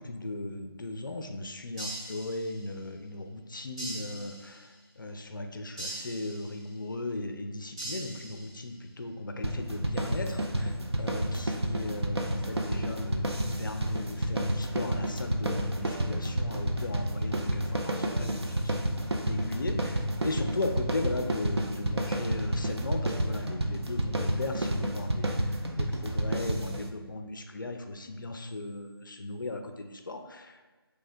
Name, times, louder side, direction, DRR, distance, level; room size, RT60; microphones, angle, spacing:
voice 1, 0.0-19.0 19.2-30.6, left 2 dB, 55° left, 5 dB, 0.4 m, -37 dB
sound 1, 1.8-2.8 3.8-4.8 5.8-6.8 7.8-8.8, right 2 dB, 15° right, 0.6 m, -41 dB
sound 2, 9.4-26.9, right 1 dB, 85° right, 0.5 m, -30 dB
3.2 x 2.6 x 3.3 m, 1.3 s
figure-of-eight pair, 160°, 13 cm